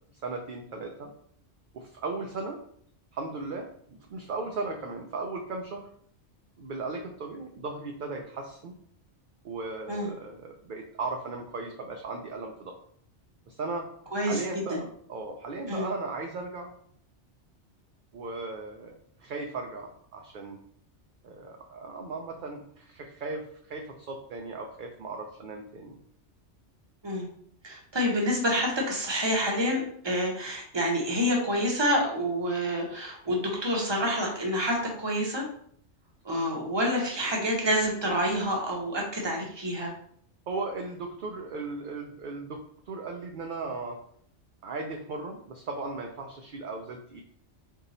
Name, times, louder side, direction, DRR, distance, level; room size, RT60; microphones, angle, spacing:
voice 1, 0.2-1.1 1.7-2.6 3.1-5.9 6.6-8.7 9.4-12.7 13.5-13.9 14.2-16.7 18.1-18.9 19.2-20.6 21.2-26.0 40.5-44.0 44.6-47.2, right 3 dB, 60° right, 2 dB, 0.6 m, -37 dB
voice 2, 14.1-14.8 15.7-15.9 27.0-27.3 27.6-35.4 36.2-39.9, equal, 25° right, -1 dB, 0.9 m, -28 dB
3.8 x 2.7 x 4.1 m, 0.64 s
omnidirectional pair, 1.2 m